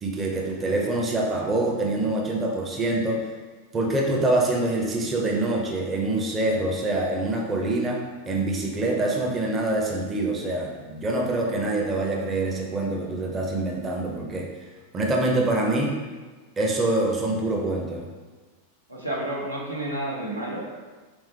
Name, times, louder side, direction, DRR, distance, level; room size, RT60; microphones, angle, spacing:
voice 1, 0.0-3.2 3.7-14.5 14.9-16.0 16.6-18.1, right 2 dB, 20° right, -1 dB, 0.5 m, -25 dB
voice 2, 18.9-20.8, right 1 dB, 85° right, -4 dB, 0.7 m, -30 dB
3.5 x 3.1 x 3.2 m, 1.3 s
figure-of-eight pair, 90°, 0 cm